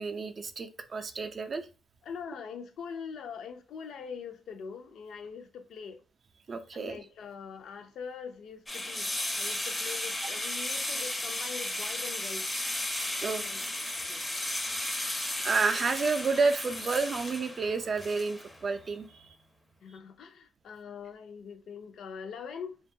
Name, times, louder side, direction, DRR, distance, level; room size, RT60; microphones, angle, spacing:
voice 1, 0.0-1.7 6.5-7.0 13.2-13.7 15.4-19.4, right 4 dB, 45° right, 0.4 m, -30 dB
voice 2, 2.0-6.0 6.7-12.5 13.4-13.7 14.0-14.2 19.8-22.8, left 6 dB, 70° left, 0.4 m, -43 dB
sound 1, 8.7-18.6, left 1 dB, 10° left, 0.5 m, -34 dB
2.7 x 2.3 x 2.6 m
cardioid pair, 90°, 0 cm